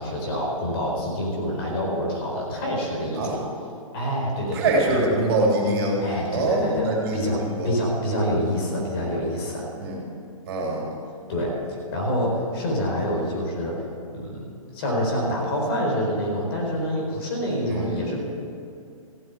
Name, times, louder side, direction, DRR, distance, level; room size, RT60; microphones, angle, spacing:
voice 1, 0.0-3.4 3.9-5.0 6.0-6.9 7.1-7.4 7.6-9.7 11.3-11.5 11.9-13.8 14.1-18.2, equal, 45° left, -1 dB, 4.4 m, -26 dB
voice 2, 4.5-6.0 6.3-7.7 9.8-10.0 10.4-10.9 17.7-17.9, right 2 dB, 45° right, -1 dB, 3.3 m, -24 dB
15.5 x 7.9 x 8.4 m, 2.4 s
hypercardioid pair, 150°, 18 cm